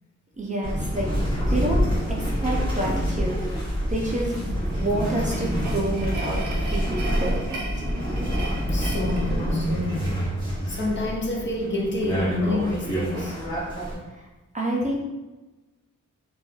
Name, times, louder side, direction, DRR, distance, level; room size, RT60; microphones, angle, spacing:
voice 1, 0.4-1.1 1.5-3.4 3.9-7.8 14.1-14.3 14.5-15.0, right 1 dB, 25° right, -3 dB, 0.4 m, -29 dB
sound 1, 0.6-13.9, equal, 15° left, 1.0 m, -27 dB
sound 2, 1.1-6.8, equal, 75° left, 0.7 m, -34 dB
sound 3, 4.7-10.2, right 3 dB, 85° right, 0.5 m, -37 dB
voice 2, 8.7-10.2 10.7-13.4, left 2 dB, 40° left, -2 dB, 0.5 m, -28 dB
2.9 x 2.3 x 2.3 m, 1.1 s
wide cardioid pair, 135°, 29 cm